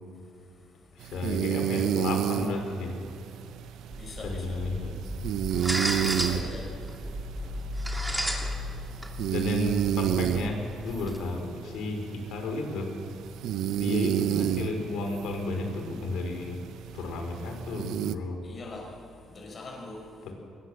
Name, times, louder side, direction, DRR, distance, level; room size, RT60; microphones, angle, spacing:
voice 1, 0.9-3.0 4.2-5.0 6.2-6.5 9.3-12.9 13.8-16.6 16.9-18.4 20.2-20.3, left 3 dB, 85° left, 4 dB, 4.6 m, -33 dB
sound 1, 1.0-18.2, right 11 dB, 80° right, 0.7 m, -31 dB
sound 2, 3.9-11.2, equal, 10° right, 2.9 m, -34 dB
voice 2, 4.0-4.6 6.1-6.7 18.4-20.3, left 2 dB, 35° left, -1 dB, 5.8 m, -42 dB
21.5 x 20.0 x 7.8 m, 2.6 s
cardioid pair, 115°, 0 cm